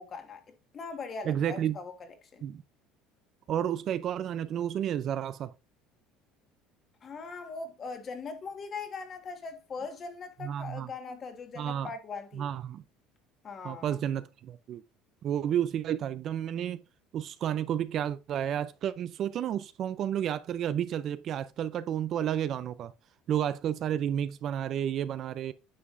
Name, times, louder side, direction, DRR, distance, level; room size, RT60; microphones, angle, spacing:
voice 1, 0.0-1.9 2.2-2.5 7.0-12.5 13.4-14.0, left 4 dB, 30° left, 1.5 m, -40 dB
voice 2, 1.3-1.8 2.4-2.6 3.5-5.5 10.4-10.9 11.6-11.9 12.3-12.8 13.6-14.8 15.2-16.8 17.1-22.9 23.3-25.5, right 10 dB, 45° right, 0.5 m, -31 dB
9.6 x 5.9 x 2.6 m
cardioid pair, 135°, 0 cm